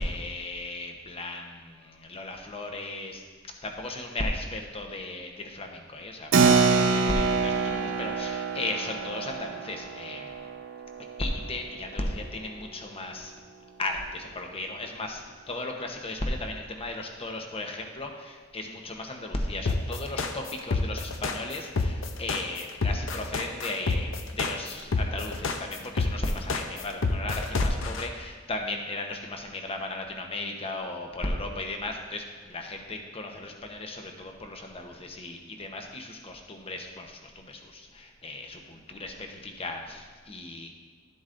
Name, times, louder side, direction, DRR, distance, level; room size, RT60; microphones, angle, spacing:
voice 1, 0.0-3.2 3.6-10.5 11.0-13.3 13.8-40.7, left 2 dB, 30° left, 3 dB, 0.9 m, -35 dB
Keyboard (musical), 6.3-12.3, right 4 dB, 75° right, 0.6 m, -26 dB
sound 1, 19.7-28.0, left 3 dB, 80° left, 0.6 m, -28 dB
12.0 x 7.9 x 2.6 m, 1.4 s
head